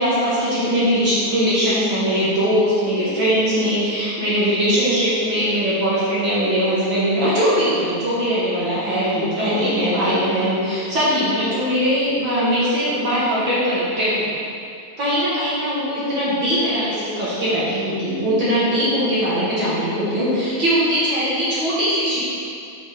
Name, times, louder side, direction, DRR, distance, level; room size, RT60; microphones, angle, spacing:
voice 1, 0.0-14.3 15.0-22.3, equal, 45° right, -10 dB, 1.9 m, -20 dB
7.2 x 5.3 x 5.0 m, 2.4 s
omnidirectional pair, 3.5 m